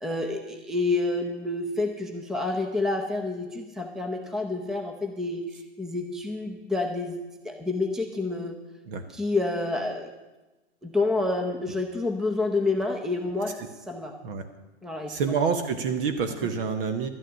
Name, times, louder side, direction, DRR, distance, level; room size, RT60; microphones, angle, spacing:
voice 1, 0.0-5.4 5.8-8.6 9.1-10.1 10.8-13.6 13.9-14.2 14.8-15.3, left 3 dB, ahead, 4 dB, 0.7 m, -28 dB
voice 2, 15.1-17.1, right 5 dB, 50° right, 8 dB, 1.2 m, -27 dB
12.5 x 6.5 x 9.6 m, 1.1 s
hypercardioid pair, 135°, 34 cm